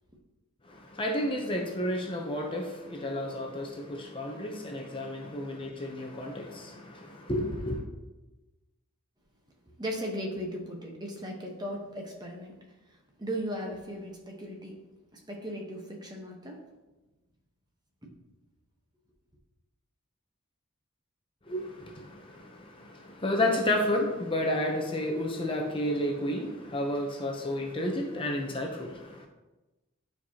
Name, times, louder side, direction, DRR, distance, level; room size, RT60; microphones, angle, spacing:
voice 1, 0.6-7.8 21.5-29.3, left 1 dB, 25° left, 0.7 m, -31 dB
voice 2, 9.8-12.6 12.9-14.8 15.1-16.6 18.0-18.1, equal, 20° right, 1.0 m, -37 dB
9.9 x 4.6 x 2.8 m
head